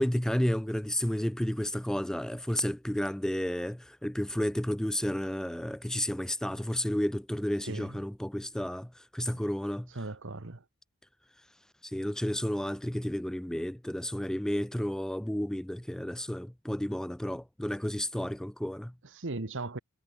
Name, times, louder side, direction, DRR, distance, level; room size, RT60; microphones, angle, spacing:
voice 1, 0.0-9.9 11.8-18.9, equal, 5° left, 0.3 m, -31 dB
voice 2, 7.6-8.0 9.3-9.4 9.9-10.6 19.0-19.8, right 2 dB, 55° right, 1.2 m, -38 dB
head